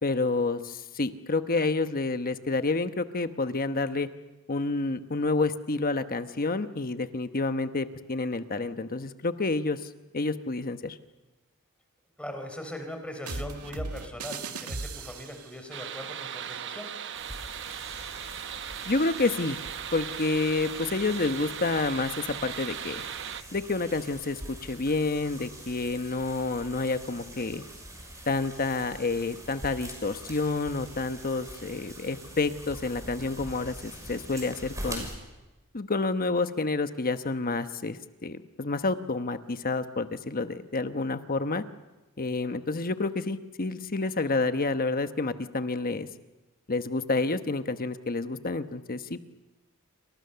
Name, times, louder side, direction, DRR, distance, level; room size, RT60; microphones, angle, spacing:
voice 1, 0.0-4.1 4.5-11.0 18.8-19.6 19.9-23.0 23.5-27.6 28.3-35.1 35.7-41.6 42.2-46.1 46.7-49.2, left 3 dB, 40° left, 9 dB, 1.1 m, -29 dB
voice 2, 12.2-16.9, left 1 dB, 5° left, 5 dB, 4.3 m, -40 dB
sound 1, 13.2-15.6, right 3 dB, 80° right, 2.1 m, -37 dB
sound 2, 15.7-23.4, right 9 dB, 55° right, 0.9 m, -38 dB
sound 3, 17.1-35.1, right 1 dB, 15° right, 6.4 m, -44 dB
29.0 x 25.5 x 6.9 m, 1.1 s
head